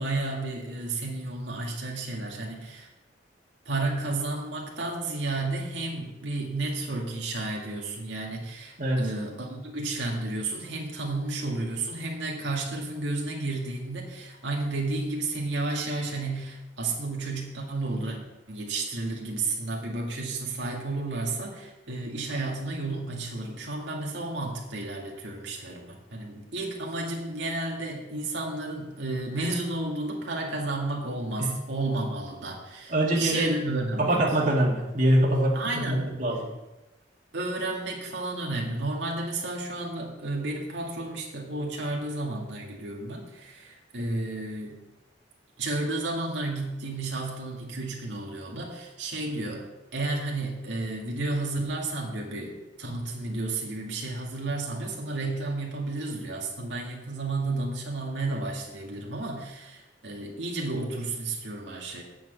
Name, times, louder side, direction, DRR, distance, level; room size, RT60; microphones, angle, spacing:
voice 1, 0.0-2.9 3.7-18.2 18.5-34.2 35.5-36.2 37.3-44.8 45.6-49.7 49.9-62.0, right 2 dB, 80° right, -1 dB, 2.0 m, -32 dB
voice 2, 32.9-33.5 34.0-36.5, right 1 dB, 45° right, -3 dB, 2.1 m, -24 dB
8.7 x 6.0 x 8.1 m, 1.0 s
head